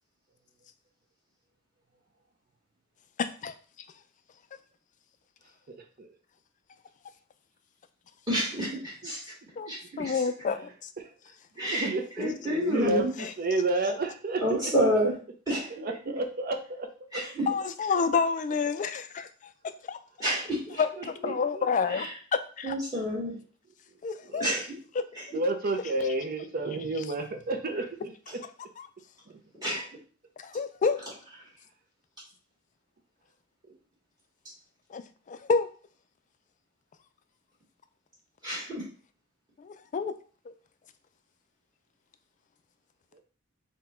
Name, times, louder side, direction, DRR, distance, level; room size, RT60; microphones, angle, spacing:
voice 1, 3.2-3.5 9.6-9.7 10.0-10.9 13.2-13.3 17.5-19.5 19.9-20.0 20.8-22.1 22.6-22.7 24.0-24.5 25.0-25.1 30.4-31.0 34.9-35.7 39.6-40.1, left 5 dB, 40° left, 10 dB, 0.3 m, -29 dB
voice 2, 5.7-6.1 9.0-9.1 10.0-10.1 11.0-11.1 11.6-14.6 15.7-16.9 21.0-21.6 24.2-24.6 25.3-28.1 29.3-29.4 33.7-33.8 43.1-43.2, right 2 dB, 45° right, 6 dB, 0.6 m, -31 dB
voice 3, 8.3-9.2 9.7-10.2 11.6-11.9 12.2-13.1 14.4-15.1 15.5-15.7 17.1-17.5 20.2-20.6 21.9-22.1 22.6-23.3 24.4-24.7 25.1-25.2 29.6-29.9 38.4-38.8, equal, 20° right, -5 dB, 1.5 m, -28 dB
4.2 x 2.2 x 4.2 m, 0.41 s
head